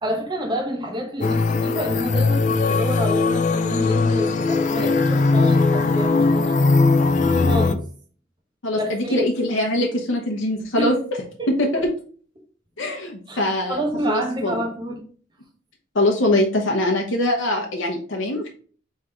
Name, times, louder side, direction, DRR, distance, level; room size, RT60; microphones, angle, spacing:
voice 1, 0.0-6.5 7.3-7.8 8.7-9.3 10.8-10.9 11.5-11.8 13.3-13.4 13.7-15.1, equal, 25° right, 1 dB, 0.9 m, -28 dB
sound 1, 1.2-7.7, left 3 dB, 40° left, 0.4 m, -19 dB
voice 2, 8.6-11.0 11.6-11.8 12.8-14.6 15.9-18.5, left 1 dB, 85° left, 1 dB, 0.9 m, -23 dB
3.7 x 3.3 x 4.4 m, 0.43 s
head